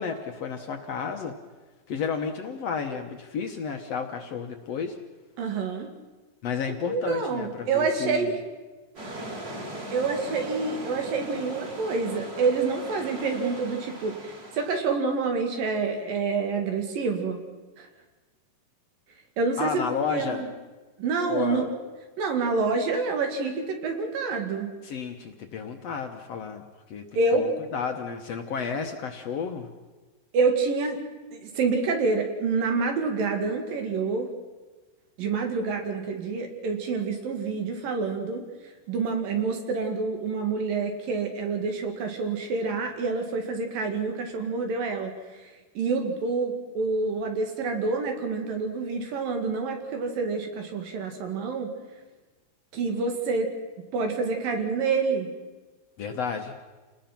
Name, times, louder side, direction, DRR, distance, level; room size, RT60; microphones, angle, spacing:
voice 1, 0.0-1.3 1.9-5.0 6.4-8.4 19.6-20.5 21.3-21.7 24.8-26.6 26.9-29.7 56.0-56.6, left 6 dB, 60° left, 5 dB, 1.8 m, -32 dB
voice 2, 5.4-5.9 6.9-8.4 9.9-17.4 17.8-17.9 19.4-19.8 20.1-20.5 21.0-21.6 22.2-24.7 27.2-27.5 30.3-31.0 31.3-34.3 35.2-38.4 38.9-45.1 45.4-51.7 52.7-53.5 53.9-55.3, right 4 dB, 80° right, 4 dB, 4.0 m, -27 dB
sound 1, 9.0-14.8, right 1 dB, 25° right, 3.6 m, -39 dB
28.5 x 20.0 x 6.0 m, 1.3 s
omnidirectional pair, 3.9 m